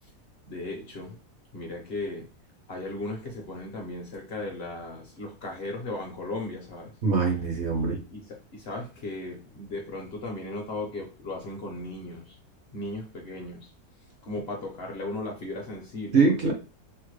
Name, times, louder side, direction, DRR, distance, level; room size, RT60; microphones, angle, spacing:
voice 1, 0.5-1.2 1.5-2.3 2.7-6.9 7.8-12.4 12.7-13.7 14.2-16.5, left 2 dB, 55° left, 0.8 m, -36 dB
voice 2, 7.0-8.0 16.1-16.5, right 4 dB, 55° right, 0.9 m, -23 dB
3.5 x 2.1 x 3.1 m
omnidirectional pair, 1.6 m